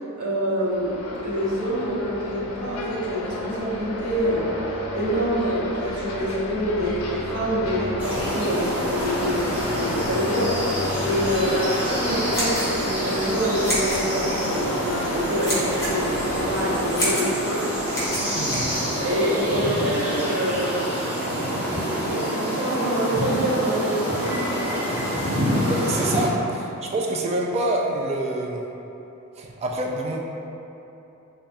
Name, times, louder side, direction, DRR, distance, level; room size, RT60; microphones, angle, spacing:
voice 1, 0.2-4.6 4.9-18.4 19.0-20.9 21.8-24.5, equal, 80° right, -7 dB, 0.9 m, -26 dB
sound 1, 0.6-17.0, left 1 dB, 75° left, 0.5 m, -33 dB
sound 2, 8.0-26.3, equal, 10° right, 0.8 m, -27 dB
sound 3, 12.2-19.4, equal, 15° left, 0.9 m, -31 dB
voice 2, 18.3-18.7 25.3-25.4 25.7-28.6 29.4-30.3, right 1 dB, 30° right, 0 dB, 0.3 m, -26 dB
3.4 x 2.3 x 4.0 m, 2.9 s
head